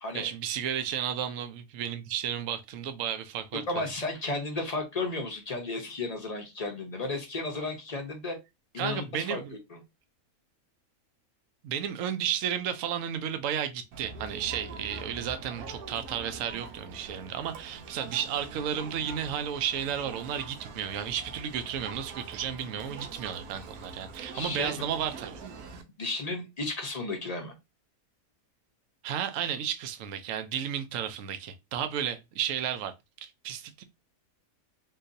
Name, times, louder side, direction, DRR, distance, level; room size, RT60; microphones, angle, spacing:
voice 1, 0.1-3.9 8.8-9.5 11.6-25.4 29.0-32.9 33.2-33.8, right 9 dB, 70° right, 0.9 m, -33 dB
voice 2, 3.7-8.4 8.7-9.4 9.7-9.8 24.3-24.7 26.0-27.5, left 3 dB, 40° left, 0.6 m, -33 dB
Crowd, 13.9-25.8, right 4 dB, 90° right, 1.1 m, -44 dB
3.8 x 2.7 x 2.6 m
omnidirectional pair, 1.6 m